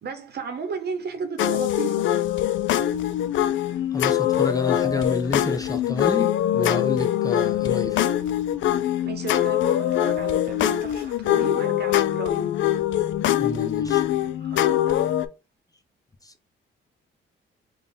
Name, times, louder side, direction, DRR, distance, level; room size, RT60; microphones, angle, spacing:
voice 1, 0.0-2.1 9.0-12.5 14.4-15.1, right 5 dB, 55° right, 0.9 m, -34 dB
sound 1, 1.4-15.3, left 12 dB, 70° left, 0.4 m, -23 dB
voice 2, 3.9-8.0 13.4-14.0 16.2-16.3, left 3 dB, 20° left, 0.6 m, -29 dB
3.6 x 2.3 x 3.7 m
cardioid pair, 90°, 20 cm